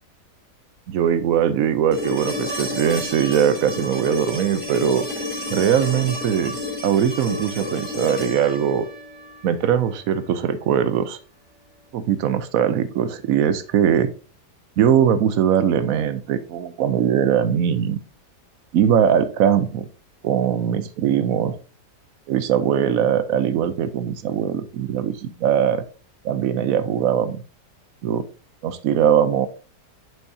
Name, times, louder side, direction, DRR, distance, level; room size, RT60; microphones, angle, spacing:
voice 1, 0.9-5.1 5.5-6.6 6.8-8.8 9.4-11.2 11.9-14.1 14.8-18.0 18.7-19.9 20.2-21.6 22.3-25.8 26.2-27.4 28.0-28.2 28.6-29.5, right 9 dB, 65° right, 13 dB, 0.9 m, -21 dB
sound 1, 1.9-10.0 12.1-12.2, left 1 dB, 5° right, 2.4 m, -31 dB
7.2 x 5.8 x 2.7 m, 0.37 s
omnidirectional pair, 1.8 m